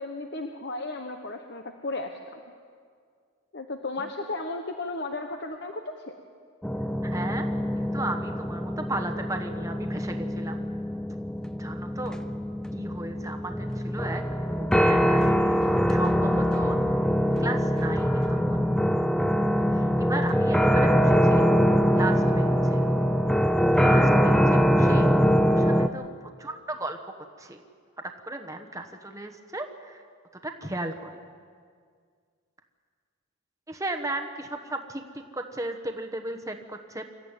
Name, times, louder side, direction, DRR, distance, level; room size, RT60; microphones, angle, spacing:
voice 1, 0.0-2.4 3.5-5.8, left 2 dB, 50° left, 5 dB, 1.0 m, -34 dB
sound 1, 6.6-25.9, equal, 5° left, 0.6 m, -23 dB
voice 2, 7.0-7.5 7.8-10.6 11.6-12.2 12.7-14.2 14.5-15.2 15.5-16.8 17.4-18.6 19.7-21.5 21.9-22.8 23.7-26.1 26.4-27.0 27.4-27.6 28.2-30.0 30.4-31.2 33.7-37.0, right 2 dB, 15° right, 5 dB, 1.1 m, -35 dB
25.5 x 14.0 x 9.0 m, 2.1 s
head